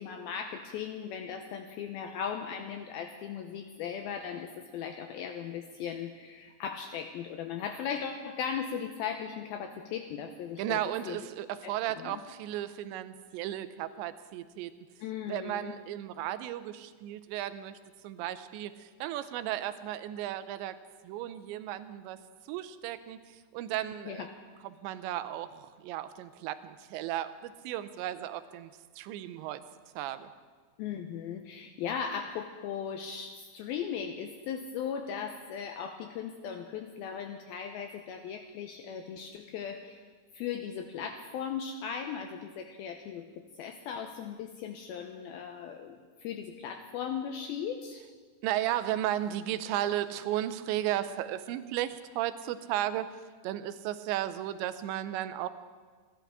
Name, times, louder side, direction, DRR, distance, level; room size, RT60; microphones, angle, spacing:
voice 1, 0.0-10.8 11.1-11.2 11.6-12.2 15.0-15.8 24.1-24.3 30.8-40.0 40.3-48.0, left 7 dB, 85° left, 5 dB, 2.2 m, -38 dB
voice 2, 10.6-14.7 15.3-17.8 18.0-20.8 21.0-22.2 22.5-24.3 24.6-28.7 29.0-29.6 30.0-30.3 48.4-53.1 53.4-55.5, right 12 dB, 90° right, 12 dB, 2.9 m, -34 dB
28.0 x 11.5 x 3.6 m, 1.5 s
omnidirectional pair, 5.0 m